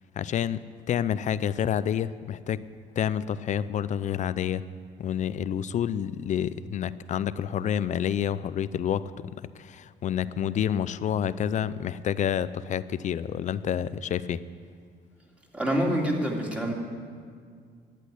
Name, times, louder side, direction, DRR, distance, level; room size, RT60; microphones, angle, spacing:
voice 1, 0.2-2.7 3.0-4.6 5.0-9.0 9.4-14.4, left 9 dB, 45° left, 16 dB, 0.5 m, -28 dB
voice 2, 15.5-16.7, equal, 5° right, -1 dB, 2.5 m, -26 dB
12.0 x 8.4 x 9.9 m, 2.1 s
cardioid pair, 110°, 17 cm